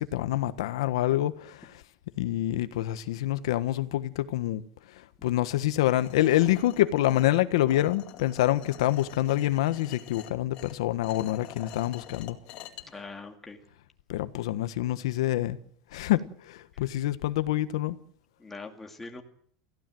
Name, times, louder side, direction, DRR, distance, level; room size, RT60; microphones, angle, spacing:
voice 1, 0.0-1.7 2.2-4.6 5.2-12.4 14.1-15.6 15.9-18.0, left 14 dB, 80° left, 1.3 m, -26 dB
sound 1, 6.0-12.8, left 13 dB, 40° left, 2.4 m, -46 dB
voice 2, 12.8-13.6 16.7-16.8 18.4-19.2, left 3 dB, 5° left, 2.0 m, -42 dB
28.0 x 16.0 x 7.7 m
supercardioid pair, 175°, 3 cm